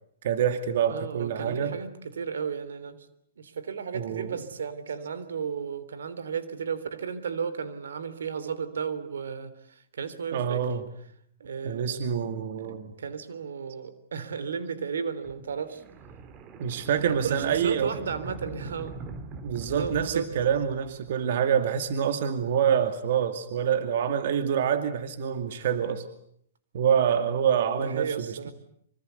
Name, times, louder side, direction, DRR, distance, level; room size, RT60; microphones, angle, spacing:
voice 1, 0.2-1.8 3.9-4.4 10.3-10.8 11.6-12.9 16.6-18.0 19.4-26.0 26.7-28.5, right 8 dB, 60° right, 9 dB, 2.4 m, -26 dB
voice 2, 0.9-3.0 3.4-10.6 11.4-12.0 12.6-12.7 13.0-15.8 17.0-19.0 19.7-20.3 27.8-28.5, right 6 dB, 85° right, 14 dB, 3.3 m, -34 dB
sound 1, 15.2-21.1, right 3 dB, 25° right, 2.3 m, -42 dB
25.5 x 25.5 x 8.2 m, 0.70 s
hypercardioid pair, 150°, 0 cm